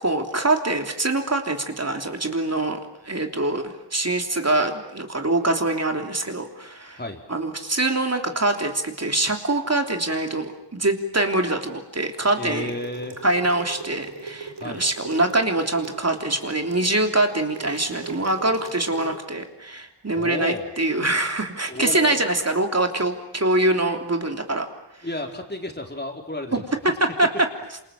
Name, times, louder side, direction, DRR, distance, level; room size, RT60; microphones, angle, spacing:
voice 1, 0.0-2.8 3.0-3.6 3.9-7.0 7.3-12.7 13.2-24.7 26.5-27.5, right 2 dB, 35° right, 4 dB, 3.4 m, -24 dB
voice 2, 12.4-13.2 14.6-14.9 20.2-20.7 21.7-22.3 25.0-26.6, left 1 dB, 20° left, 3 dB, 4.2 m, -32 dB
sound 1, 12.5-19.2, right 4 dB, 85° right, 4.4 m, -39 dB
28.0 x 27.5 x 7.6 m, 0.86 s
wide cardioid pair, 75°, 45 cm